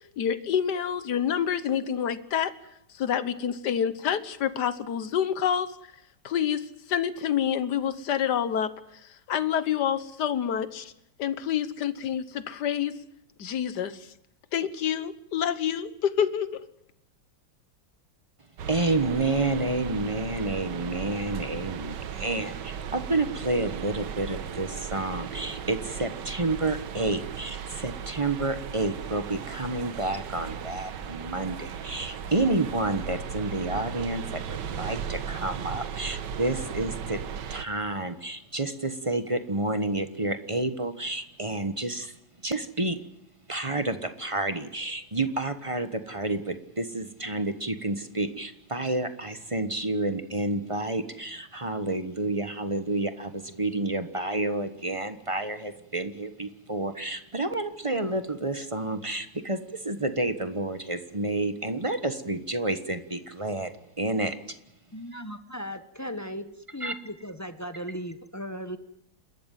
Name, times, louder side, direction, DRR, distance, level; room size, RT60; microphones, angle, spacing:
voice 1, 0.2-2.5 2.9-5.8 6.2-8.7 9.3-10.9 11.2-13.0 13.4-14.1 14.5-16.7, left 9 dB, 60° left, 14 dB, 1.6 m, -27 dB
sound 1, 18.6-37.6, right 7 dB, 65° right, 1.6 m, -36 dB
voice 2, 18.7-37.2 37.5-43.0 43.5-63.7 64.0-64.6 66.8-66.9, right 2 dB, 20° right, 10 dB, 0.9 m, -30 dB
voice 3, 64.9-66.5 66.7-68.8, equal, 15° left, 9 dB, 0.6 m, -37 dB
28.5 x 13.5 x 9.3 m, 0.79 s
omnidirectional pair, 2.2 m